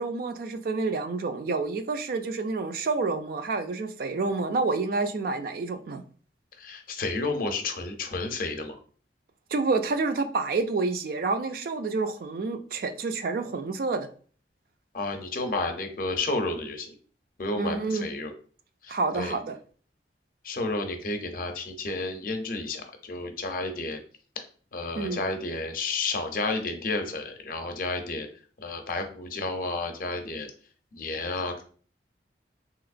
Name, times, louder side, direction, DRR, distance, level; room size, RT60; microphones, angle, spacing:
voice 1, 0.0-6.0 9.5-14.1 17.6-18.1 18.9-19.6 25.0-25.2, right 3 dB, 55° right, 0.3 m, -28 dB
voice 2, 6.6-8.8 14.9-16.9 17.4-18.3 18.8-19.4 20.4-24.0 24.4-24.5 24.7-28.3 28.6-30.5 30.9-31.6, left 3 dB, 50° left, 0.5 m, -31 dB
3.3 x 2.9 x 2.4 m
head